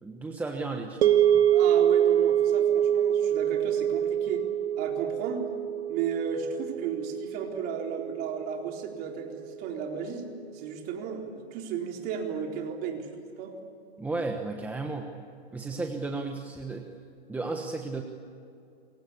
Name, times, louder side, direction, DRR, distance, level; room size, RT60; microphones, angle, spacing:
voice 1, 0.0-1.5 14.0-15.1 15.5-16.9 17.3-18.0, right 3 dB, 5° right, 3 dB, 1.2 m, -34 dB
sound 1, 1.0-9.3, right 10 dB, 75° right, 2.1 m, -25 dB
voice 2, 1.5-4.5 4.8-5.5 5.9-13.1 13.4-13.6, right 7 dB, 30° right, 1 dB, 4.2 m, -34 dB
28.0 x 24.0 x 8.5 m, 2.5 s
hypercardioid pair, 155°, 32 cm